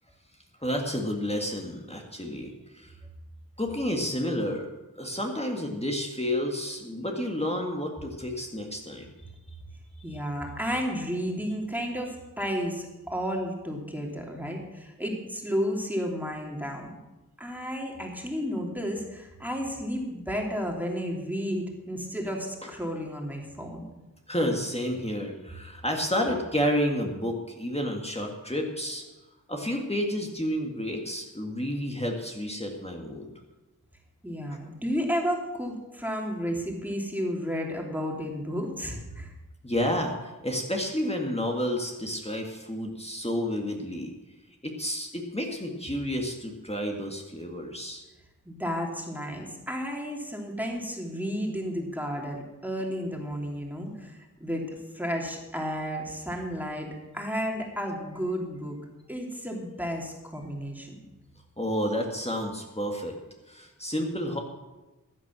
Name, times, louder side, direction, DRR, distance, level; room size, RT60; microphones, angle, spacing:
voice 1, 0.6-2.9 3.6-4.7 5.0-9.1 22.6-22.7 24.3-29.0 29.5-33.3 39.6-44.1 44.6-48.0 61.6-63.2 63.5-64.4, equal, 20° left, 1 dB, 2.0 m, -30 dB
voice 2, 10.0-17.0 17.4-23.9 34.2-39.3 48.4-58.8 59.1-61.0, equal, 5° right, 0 dB, 2.9 m, -32 dB
15.0 x 9.8 x 6.2 m, 1.1 s
wide cardioid pair, 55°, 34 cm